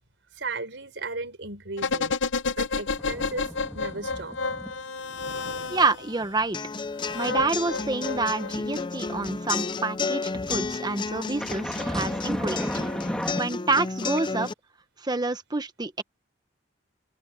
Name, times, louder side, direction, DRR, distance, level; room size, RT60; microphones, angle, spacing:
voice 1, 0.3-2.1 2.6-3.5 3.7-4.4, right 3 dB, 70° right, 5.0 m, -35 dB
sound 1, 1.8-6.2 7.0-8.8 9.1-9.2, left 4 dB, 65° left, 0.7 m, -30 dB
sound 2, 2.9-4.8 5.1-5.4 5.8-9.4 10.3-13.4, equal, 5° left, 2.2 m, -35 dB
voice 2, 5.7-6.6 7.1-12.8 13.1-14.5 15.0-16.0, right 3 dB, 20° right, 1.2 m, -28 dB
sound 3, 6.5-14.5, left 4 dB, 25° left, 0.5 m, -32 dB
open air
head